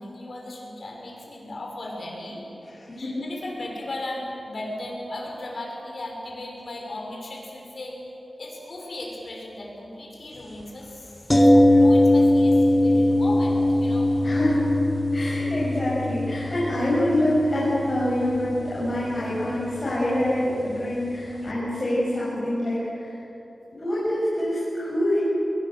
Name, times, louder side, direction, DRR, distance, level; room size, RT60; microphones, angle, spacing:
voice 1, 0.0-2.5 3.0-8.0 8.4-11.1 11.3-14.3, left 1 dB, 55° left, -1 dB, 6.1 m, -36 dB
voice 2, 2.7-3.2 14.2-14.6 15.1-23.1 23.8-25.2, left 1 dB, 35° left, -9 dB, 7.3 m, -25 dB
sound 1, 11.3-21.2 21.5-21.6, left 1 dB, 15° left, 1.4 m, -21 dB
23.0 x 22.0 x 7.9 m, 3.0 s
wide cardioid pair, 105°, 0 cm